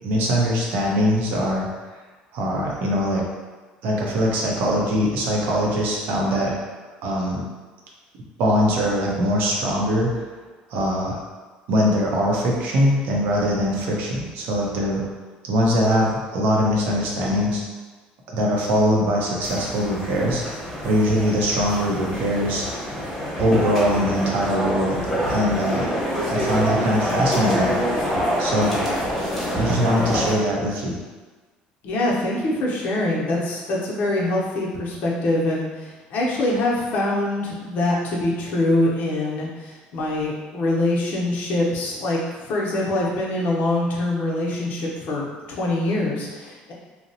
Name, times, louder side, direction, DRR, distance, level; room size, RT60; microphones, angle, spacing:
voice 1, 0.0-1.7 2.3-3.2 3.8-6.5 7.0-7.4 8.4-10.1 10.7-11.2 11.7-15.0 15.4-17.6 18.3-20.4 20.8-22.7 23.4-25.0 25.3-25.9 26.2-27.7 28.4-28.8 29.5-31.0, equal, 70° right, -2 dB, 0.6 m, -22 dB
sound 1, 19.4-30.3, equal, 10° left, 0.9 m, -26 dB
voice 2, 31.8-46.7, left 1 dB, 55° left, -4 dB, 0.6 m, -24 dB
2.7 x 2.0 x 2.7 m, 1.3 s
cardioid pair, 125°, 3 cm